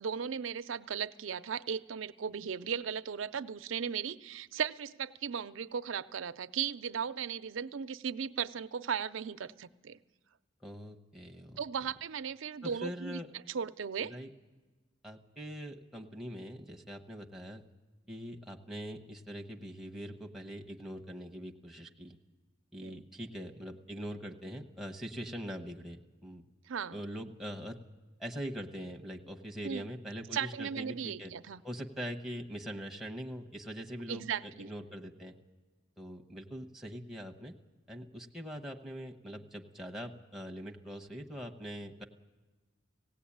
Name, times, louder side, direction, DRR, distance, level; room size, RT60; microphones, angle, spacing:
voice 1, 0.0-10.0 11.6-13.2 13.5-14.1 22.8-23.0 26.7-27.0 29.6-29.9 30.3-31.6 34.1-34.7, right 7 dB, 80° right, 12 dB, 0.5 m, -36 dB
voice 2, 10.6-11.6 12.6-13.3 14.0-14.3 15.0-17.6 18.1-22.2 22.7-26.5 26.9-27.8 28.2-31.3 31.6-35.4 36.0-37.5 37.9-42.0, equal, ahead, 1 dB, 1.0 m, -43 dB
19.5 x 17.0 x 8.6 m, 1.3 s
head